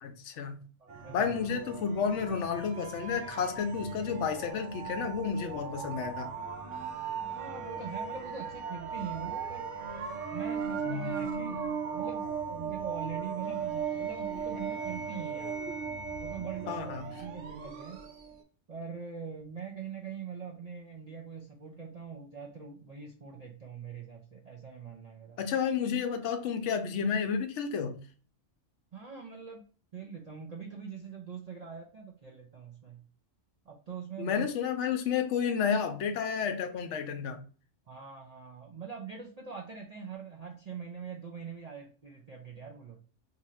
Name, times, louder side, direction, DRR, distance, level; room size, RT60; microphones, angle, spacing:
voice 1, 0.0-0.6 1.1-6.3 10.8-11.2 16.7-17.1 25.4-28.0 34.2-37.4, left 6 dB, 75° left, 0.9 m, -31 dB
voice 2, 0.8-1.3 7.2-9.7 10.3-15.6 16.2-16.9 17.2-18.1 18.7-25.4 28.9-29.6 29.9-33.0 33.7-34.5 37.9-43.0, right 6 dB, 55° right, 0.4 m, -43 dB
sound 1, 0.9-18.4, right 6 dB, 80° right, 1.1 m, -37 dB
2.7 x 2.5 x 4.1 m
omnidirectional pair, 1.3 m